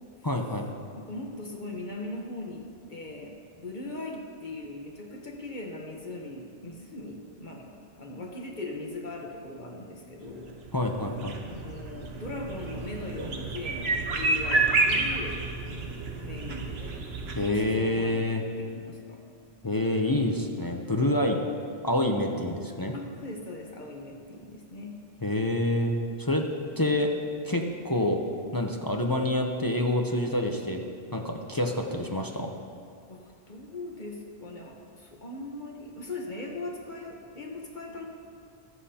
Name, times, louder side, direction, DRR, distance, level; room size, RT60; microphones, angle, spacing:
voice 1, 0.2-0.7 10.7-11.4 17.3-18.4 19.6-21.4 21.8-22.9 25.2-25.9 26.2-26.4 26.8-27.1 27.4-28.2 28.5-30.8 31.1-32.5, left 1 dB, 25° left, 2 dB, 0.6 m, -27 dB
voice 2, 0.9-7.7 8.0-10.5 11.5-17.0 17.3-18.3 18.6-19.2 22.9-25.1 33.1-38.1, left 2 dB, 50° left, 0 dB, 1.2 m, -40 dB
sound 1, 10.3-17.5, right 3 dB, 75° right, 1.2 m, -30 dB
22.0 x 7.5 x 2.8 m, 2.3 s
omnidirectional pair, 1.1 m